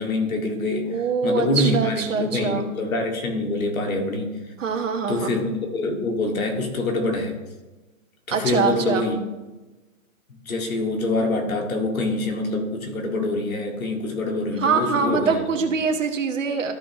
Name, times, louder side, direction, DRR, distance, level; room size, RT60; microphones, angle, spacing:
voice 1, 0.0-4.4 5.1-7.4 8.3-9.2 10.5-15.7, left 2 dB, 75° left, 2 dB, 2.1 m, -25 dB
voice 2, 0.9-2.7 4.6-5.4 8.3-9.1 14.6-16.7, right 5 dB, 65° right, 4 dB, 1.4 m, -24 dB
14.0 x 5.5 x 3.0 m, 1.1 s
hypercardioid pair, 180°, 42 cm